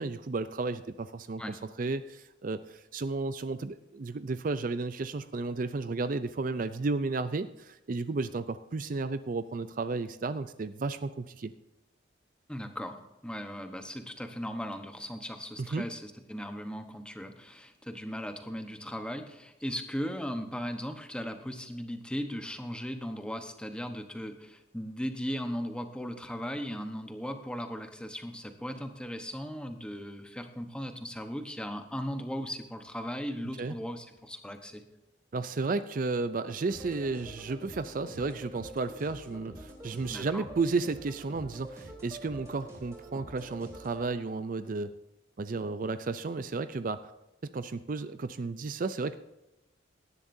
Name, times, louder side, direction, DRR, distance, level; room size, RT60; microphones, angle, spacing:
voice 1, 0.0-11.5 15.6-15.8 33.6-33.7 35.3-44.9 45.4-47.1 47.5-49.2, right 3 dB, 45° right, 12 dB, 0.4 m, -33 dB
voice 2, 12.5-13.0 13.2-34.8 40.1-40.4, equal, 5° left, 6 dB, 1.0 m, -37 dB
sound 1, 36.7-44.1, right 1 dB, 15° right, 3.7 m, -46 dB
17.5 x 11.0 x 2.7 m, 0.96 s
head